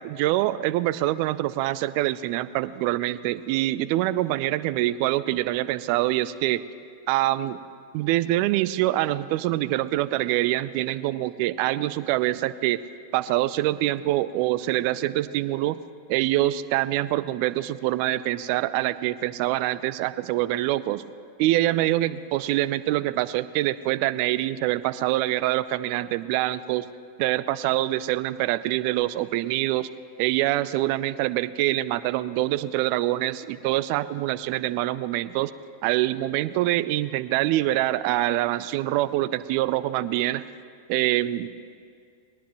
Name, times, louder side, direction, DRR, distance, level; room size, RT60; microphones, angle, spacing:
voice 1, 0.0-6.6 7.1-7.6 7.9-12.8 13.1-15.8 16.1-21.0 21.4-26.9 27.2-29.9 30.2-35.5 35.8-40.4 40.9-41.5, right 15 dB, 45° right, 17 dB, 0.5 m, -25 dB
21.0 x 18.5 x 3.0 m, 2.2 s
figure-of-eight pair, 90°, 0 cm